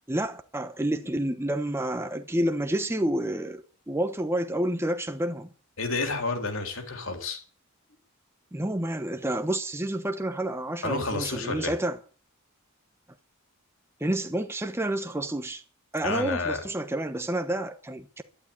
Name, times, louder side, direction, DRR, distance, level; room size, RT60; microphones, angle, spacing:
voice 1, 0.1-5.5 8.5-12.0 14.0-15.6 15.9-18.2, right 1 dB, 10° right, 1.0 m, -29 dB
voice 2, 5.8-7.4 10.8-11.7 16.0-16.6, left 3 dB, 60° left, 3.5 m, -30 dB
12.0 x 11.5 x 8.4 m
head